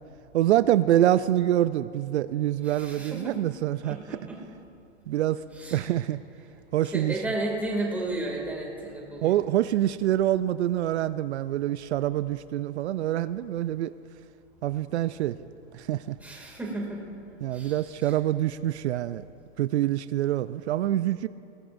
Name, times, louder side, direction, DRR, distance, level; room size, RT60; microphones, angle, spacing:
voice 1, 0.3-4.2 5.1-5.4 5.7-6.2 6.7-7.1 9.2-13.9 14.6-15.4 15.7-16.2 17.4-19.2 19.6-21.3, right 13 dB, 75° right, 14 dB, 0.5 m, -25 dB
voice 2, 2.7-3.4 3.8-4.4 5.6-5.9 6.9-9.4 16.2-17.1 17.5-18.1, right 2 dB, 5° right, -3 dB, 2.4 m, -33 dB
21.0 x 19.0 x 2.6 m, 2.7 s
hypercardioid pair, 145°, 34 cm